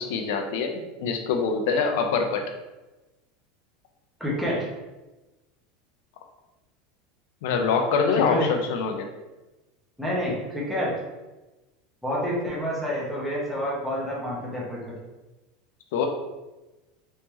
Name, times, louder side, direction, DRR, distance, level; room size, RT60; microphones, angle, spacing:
voice 1, 0.0-2.4 7.4-9.1 15.9-16.1, left 5 dB, 65° left, 4 dB, 0.5 m, -24 dB
voice 2, 4.2-4.6 8.1-8.5 10.0-10.9 12.0-14.8, equal, ahead, -6 dB, 0.8 m, -28 dB
3.4 x 3.2 x 3.0 m, 1.1 s
supercardioid pair, 175°, 0 cm